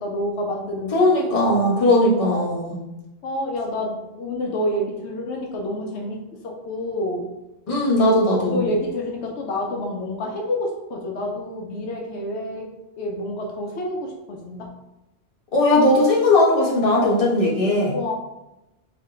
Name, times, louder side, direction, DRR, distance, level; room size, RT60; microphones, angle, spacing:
voice 1, 0.0-1.0 3.2-7.3 8.3-12.7 13.0-14.7 17.9-18.1, left 1 dB, 80° left, 0 dB, 0.9 m, -28 dB
voice 2, 0.9-2.8 7.7-8.6 15.5-17.9, left 1 dB, 30° left, -5 dB, 1.1 m, -18 dB
3.5 x 2.7 x 3.7 m, 0.94 s
omnidirectional pair, 1.1 m